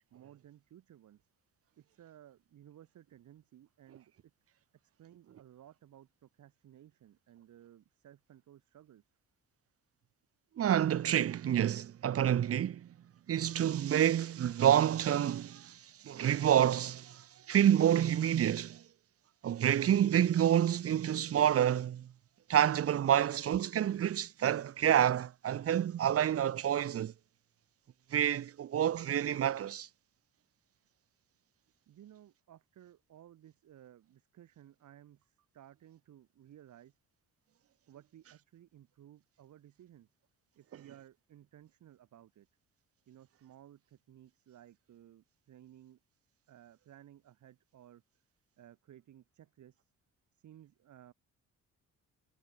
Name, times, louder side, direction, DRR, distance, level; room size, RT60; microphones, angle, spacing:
voice 1, 0.1-1.3 1.8-4.1 4.8-9.0 31.9-37.0 37.9-40.1 40.6-42.5 43.1-46.0 46.5-48.0 48.6-49.9 50.3-51.1, right 11 dB, 70° right, 6.9 m, -58 dB
voice 2, 10.6-12.9 13.3-18.8 19.4-22.1 22.5-27.1 28.1-29.9, right 10 dB, 50° right, 0.9 m, -28 dB
cardioid pair, 90°, 30 cm